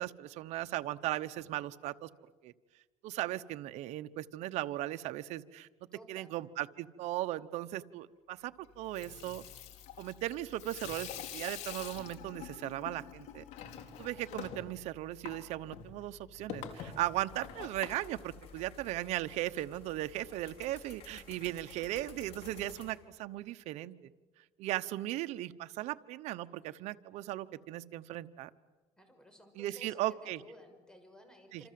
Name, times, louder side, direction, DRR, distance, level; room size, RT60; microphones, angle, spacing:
voice 1, 0.0-2.1 2.4-2.5 3.0-5.7 6.1-9.4 10.0-13.4 14.0-24.1 24.6-28.5 29.6-30.4 31.5-31.6, right 15 dB, 80° right, 11 dB, 1.0 m, -37 dB
voice 2, 5.9-6.3 29.0-31.7, equal, 5° left, 6 dB, 6.4 m, -56 dB
Water tap faucet / Sink (filling or washing), 8.8-19.0, left 8 dB, 75° left, 3.3 m, -46 dB
sound 1, 16.7-22.9, left 6 dB, 60° left, 5.5 m, -54 dB
27.5 x 27.5 x 7.7 m, 1.2 s
cardioid pair, 115°, 11 cm